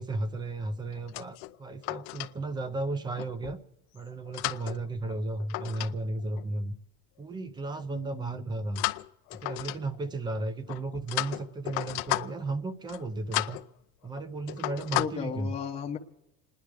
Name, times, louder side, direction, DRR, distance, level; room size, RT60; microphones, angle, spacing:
voice 1, 0.0-3.6 3.9-6.7 7.2-8.9 9.3-13.6 14.0-15.6, right 2 dB, 15° right, 14 dB, 0.5 m, -34 dB
sound 1, 0.9-2.3 3.2-3.6 4.1-5.9 6.2-6.4 8.7-10.1 10.7-12.5 12.8-13.0 13.3-13.7 14.0-14.2 14.5-15.1, left 21 dB, 75° left, 0.6 m, -34 dB
voice 2, 7.9-8.4 15.0-16.0, left 7 dB, 20° left, 0 dB, 0.8 m, -35 dB
28.0 x 10.5 x 4.8 m, 0.90 s
cardioid pair, 170°, 35 cm